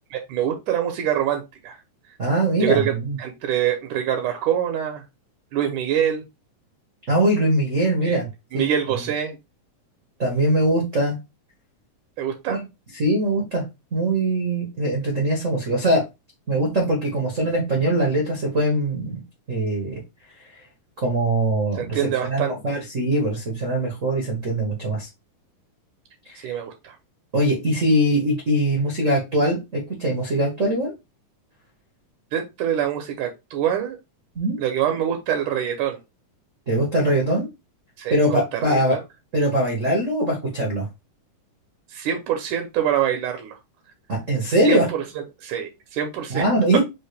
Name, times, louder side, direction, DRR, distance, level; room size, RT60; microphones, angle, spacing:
voice 1, 0.1-1.8 2.6-2.9 3.2-5.0 5.5-6.3 8.0-8.2 8.5-9.4 12.2-12.6 21.8-22.8 26.4-26.9 32.3-34.0 34.6-36.0 38.0-39.0 41.9-43.6 44.6-44.8 45.4-46.4, right 9 dB, 75° right, 4 dB, 2.1 m, -25 dB
voice 2, 2.2-3.2 7.1-8.3 8.5-8.7 10.2-11.2 12.5-12.6 12.9-13.6 13.9-16.0 16.5-19.2 19.5-20.0 21.0-25.1 26.2-26.5 27.3-30.9 34.3-34.6 36.7-37.5 38.1-39.0 39.3-40.9 44.1-44.9 46.3-46.8, right 1 dB, 60° right, 0 dB, 0.7 m, -22 dB
5.6 x 2.5 x 3.3 m, 0.24 s
omnidirectional pair, 3.7 m